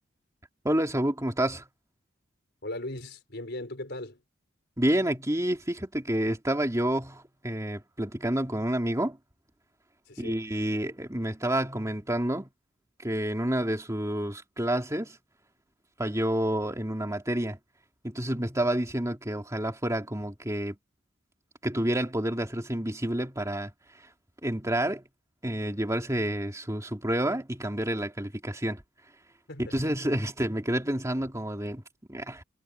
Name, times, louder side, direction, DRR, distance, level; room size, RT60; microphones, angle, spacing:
voice 1, 0.6-1.7 4.8-9.2 10.2-12.5 13.0-15.2 16.0-17.6 18.0-20.7 21.6-24.1 24.4-25.0 25.4-28.8 29.6-31.8 32.1-32.4, right 1 dB, 15° right, 2.9 m, -29 dB
voice 2, 2.6-4.2 10.1-10.4 29.5-30.1, left 1 dB, 55° left, 5.2 m, -39 dB
head